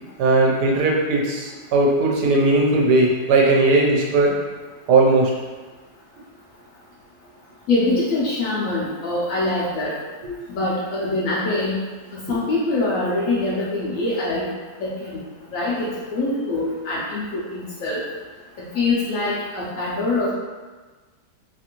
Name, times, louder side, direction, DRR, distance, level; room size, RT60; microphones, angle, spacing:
voice 1, 0.2-4.4 4.9-5.3 10.2-10.3, right 2 dB, 80° right, -1 dB, 1.2 m, -18 dB
voice 2, 7.7-9.9 10.5-11.7 12.1-14.5 14.8-15.2 15.5-18.0 18.7-20.3, left 2 dB, 70° left, -6 dB, 0.8 m, -24 dB
2.9 x 2.5 x 2.8 m, 1.3 s
omnidirectional pair, 1.8 m